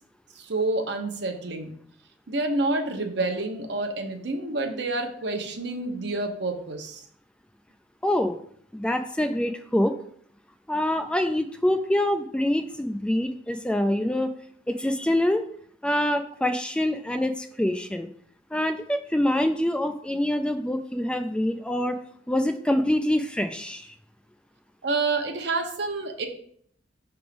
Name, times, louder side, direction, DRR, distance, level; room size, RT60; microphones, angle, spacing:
voice 1, 0.4-1.8 2.3-7.0 24.8-26.3, right 2 dB, 65° right, 4 dB, 0.9 m, -28 dB
voice 2, 8.0-8.4 8.7-9.9 10.7-14.3 14.7-15.4 15.8-18.1 18.5-22.0 22.3-23.9, left 1 dB, 5° left, 7 dB, 0.3 m, -25 dB
6.0 x 3.5 x 5.1 m, 0.63 s
head